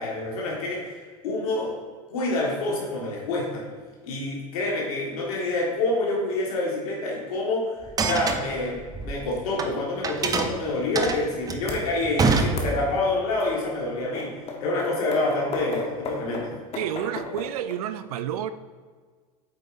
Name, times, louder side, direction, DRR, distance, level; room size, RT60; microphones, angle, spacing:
voice 1, 0.0-1.7 2.1-3.7 4.0-16.5, left 2 dB, 75° left, -3 dB, 1.7 m, -27 dB
sound 1, 7.8-9.7 10.0-13.1, right 4 dB, 20° right, 0.6 m, -26 dB
sound 2, 11.7-11.8 12.3-12.7 13.4-13.5 14.1-17.8, left 3 dB, 35° left, 1.2 m, -34 dB
voice 2, 16.8-18.5, right 10 dB, 80° right, 12 dB, 0.5 m, -30 dB
8.2 x 4.7 x 2.6 m, 1.5 s
hypercardioid pair, 100°, 19 cm